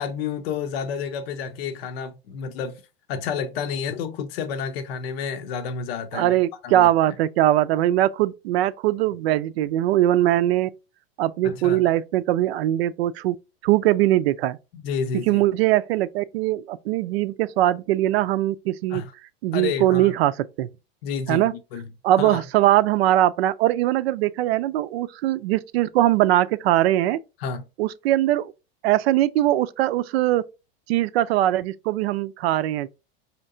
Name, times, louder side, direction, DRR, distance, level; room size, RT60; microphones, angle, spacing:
voice 1, 0.0-2.8 3.1-6.3 6.6-7.1 11.4-11.8 14.7-15.4 18.9-19.1 19.5-20.1 21.0-21.9 22.2-22.4 27.4-27.6, left 6 dB, 70° left, 0.7 m, -30 dB
voice 2, 6.1-10.7 11.2-13.4 13.6-14.6 15.3-19.0 19.4-20.3 20.6-20.7 21.3-21.5 22.0-27.2 27.8-28.5 28.8-30.4 30.9-32.9, right 14 dB, 70° right, 0.5 m, -21 dB
4.4 x 2.8 x 2.5 m
hypercardioid pair, 110°, 31 cm